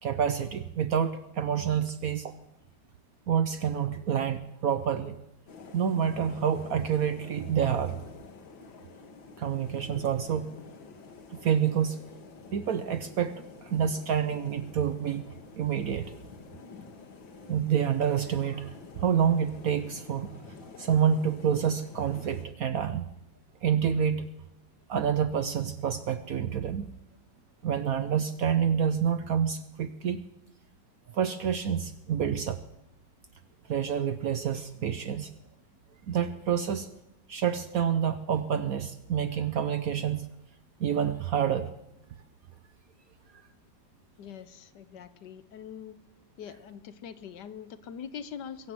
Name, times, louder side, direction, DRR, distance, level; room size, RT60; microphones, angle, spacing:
voice 1, 0.0-2.4 3.3-5.2 5.7-8.0 9.4-10.5 11.3-12.0 12.5-15.2 15.6-16.1 17.5-23.1 23.6-24.2 24.9-26.9 27.6-30.2 31.1-32.6 33.7-35.3 36.1-36.9 37.3-40.3 40.8-41.7, right 8 dB, 65° right, 11 dB, 0.9 m, -28 dB
sound 1, 5.5-22.5, left 4 dB, 85° left, 2.2 m, -48 dB
voice 2, 44.2-46.0 46.4-48.7, left 8 dB, 70° left, 13 dB, 1.4 m, -43 dB
23.0 x 7.7 x 7.5 m, 0.87 s
omnidirectional pair, 2.1 m